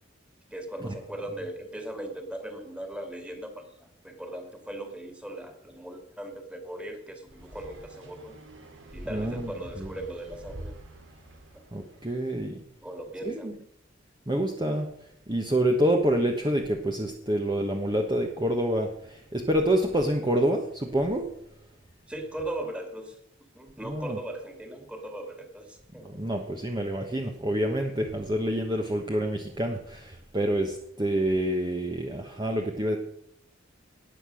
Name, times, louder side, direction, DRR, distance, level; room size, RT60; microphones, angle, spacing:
voice 1, 0.5-8.4 8.9-10.8 12.8-13.5 22.1-23.2 23.5-26.1, right 1 dB, 5° right, 4 dB, 2.3 m, -38 dB
sound 1, 7.3-12.1, right 1 dB, 65° right, 2.9 m, -45 dB
voice 2, 9.1-9.5 9.8-9.9 11.7-12.6 13.2-13.5 14.3-14.9 15.3-21.3 23.8-24.2 26.0-33.0, right 1 dB, 20° right, 2 dB, 1.2 m, -27 dB
19.0 x 7.5 x 6.4 m, 0.74 s
head